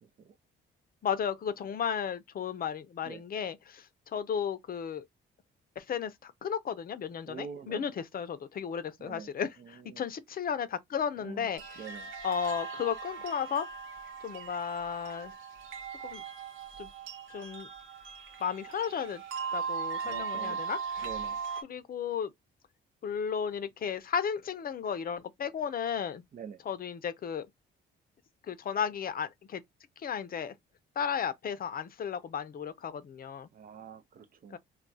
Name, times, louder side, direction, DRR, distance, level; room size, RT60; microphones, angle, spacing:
voice 1, 0.0-0.4 3.0-3.2 7.3-7.8 9.0-9.3 9.6-10.0 11.2-11.5 11.8-12.1 20.0-20.6 21.0-21.4 26.3-26.6 33.5-34.6, right 7 dB, 45° right, 0.6 m, -45 dB
voice 2, 1.0-5.0 5.8-11.9 12.2-13.7 14.2-15.3 16.0-16.2 16.8-16.9 17.3-17.7 18.4-19.2 19.5-21.1 21.6-22.3 23.0-26.2 26.7-27.5 28.5-29.6 30.0-30.5 31.0-33.5 34.5-34.6, left 7 dB, 45° left, 0.6 m, -34 dB
sound 1, 11.6-21.6, right 6 dB, 85° right, 1.0 m, -39 dB
2.3 x 2.3 x 4.0 m
cardioid pair, 90°, 20 cm